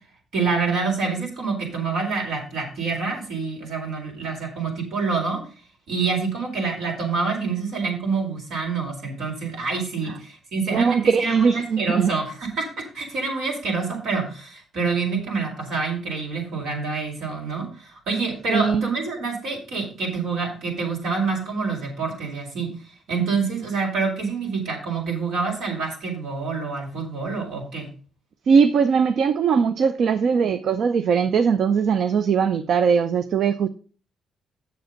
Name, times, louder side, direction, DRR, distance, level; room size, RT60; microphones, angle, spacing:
voice 1, 0.3-5.4 5.9-12.6 12.9-22.7 23.1-27.9, right 4 dB, 80° right, 0 dB, 4.1 m, -27 dB
voice 2, 10.7-12.1 18.5-18.9 28.5-33.7, right 6 dB, 65° right, 11 dB, 0.5 m, -20 dB
7.8 x 6.9 x 5.2 m, 0.40 s
cardioid pair, 90°, 0 cm